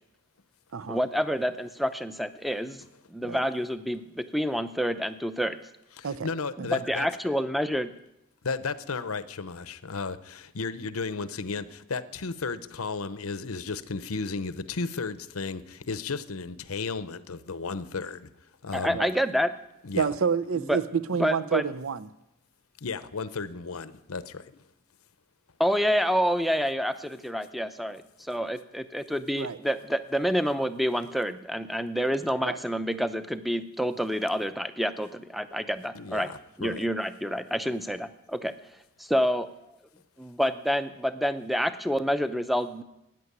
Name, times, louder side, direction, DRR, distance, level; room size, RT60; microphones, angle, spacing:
voice 1, 0.9-2.8 3.1-5.6 6.7-7.9 18.7-19.5 20.6-20.8 21.2-21.6 25.6-36.3 36.6-38.5 39.0-39.5 40.2-42.8, equal, ahead, 11 dB, 0.6 m, -28 dB
voice 2, 6.0-7.1 8.4-18.3 18.6-19.0 19.8-20.1 22.8-24.6 35.9-36.8, left 4 dB, 80° left, 14 dB, 0.8 m, -34 dB
voice 3, 20.0-20.8 21.1-22.1 29.4-29.6 32.4-32.6, right 6 dB, 70° right, 15 dB, 0.6 m, -28 dB
14.0 x 9.6 x 9.6 m, 0.87 s
head